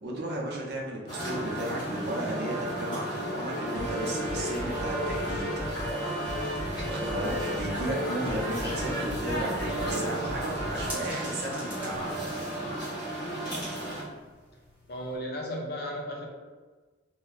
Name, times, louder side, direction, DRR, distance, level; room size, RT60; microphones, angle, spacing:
voice 1, 0.0-5.5 6.8-12.2 13.8-13.9, right 1 dB, 60° right, -2 dB, 0.7 m, -34 dB
sound 1, 1.1-14.0, right 1 dB, 25° left, 1.3 m, -34 dB
sound 2, 3.4-10.9, equal, 25° right, 0.9 m, -36 dB
sound 3, 7.0-15.2, right 1 dB, 10° right, 1.1 m, -48 dB
voice 2, 14.9-16.3, equal, 55° left, -1 dB, 0.6 m, -35 dB
2.8 x 2.2 x 3.9 m, 1.3 s
head